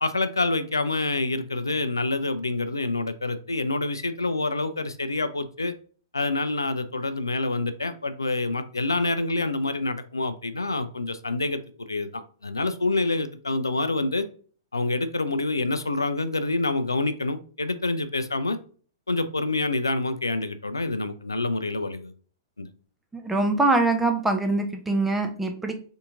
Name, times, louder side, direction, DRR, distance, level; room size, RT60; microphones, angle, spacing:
voice 1, 0.0-5.7 6.1-14.2 14.7-18.6 19.1-22.1 22.6-22.7, left 2 dB, 85° left, 11 dB, 0.3 m, -27 dB
voice 2, 23.1-25.7, right 2 dB, 5° right, 5 dB, 0.5 m, -23 dB
3.5 x 2.8 x 2.5 m, 0.43 s
figure-of-eight pair, 110°, 2 cm